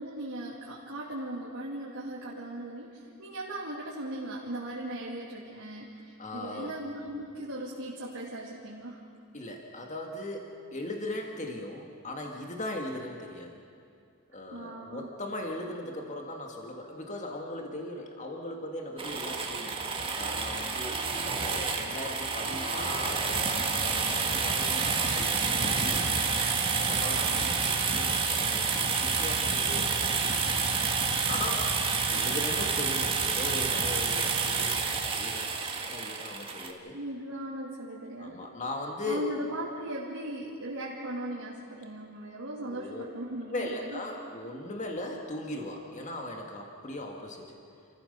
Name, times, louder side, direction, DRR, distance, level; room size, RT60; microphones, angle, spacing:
voice 1, 0.0-9.0 14.5-15.1 36.9-38.5 39.1-44.0, right 1 dB, 90° right, -6 dB, 2.8 m, -38 dB
voice 2, 6.2-6.8 9.3-13.6 14.3-19.8 20.1-26.3 26.8-30.8 31.2-31.7 32.1-35.6 35.9-37.0 38.2-39.3 42.6-43.1 43.5-47.6, left 1 dB, 35° left, 2 dB, 2.0 m, -39 dB
sound 1, 19.0-36.7, right 5 dB, 25° right, 1.7 m, -29 dB
28.0 x 15.5 x 6.9 m, 2.4 s
head